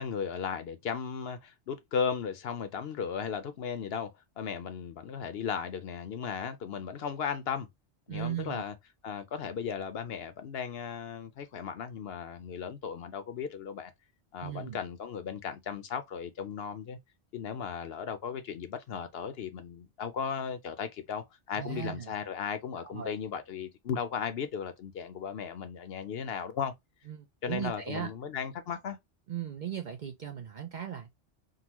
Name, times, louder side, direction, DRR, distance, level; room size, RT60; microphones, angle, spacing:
voice 1, 0.0-4.1 4.4-7.7 8.1-8.7 9.0-13.9 14.3-17.0 17.3-26.7 27.4-29.0, left 7 dB, 65° left, 0.8 m, -36 dB
voice 2, 8.1-8.6 14.4-14.8 21.6-22.1 22.8-23.2 27.1-28.1 29.3-31.1, right 9 dB, 55° right, 0.5 m, -37 dB
3.8 x 2.2 x 2.9 m
omnidirectional pair, 1.2 m